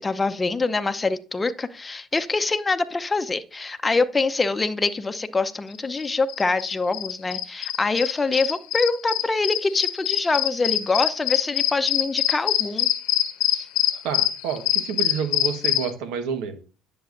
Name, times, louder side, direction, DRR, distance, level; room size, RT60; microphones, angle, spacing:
voice 1, 0.0-12.9 13.5-13.7, left 3 dB, 25° left, 10 dB, 0.7 m, -25 dB
sound 1, 6.0-15.9, left 13 dB, 75° left, 0.9 m, -24 dB
voice 2, 14.0-16.6, right 7 dB, 75° right, 8 dB, 1.3 m, -29 dB
10.5 x 6.9 x 2.6 m, 0.35 s
supercardioid pair, 70°, 0 cm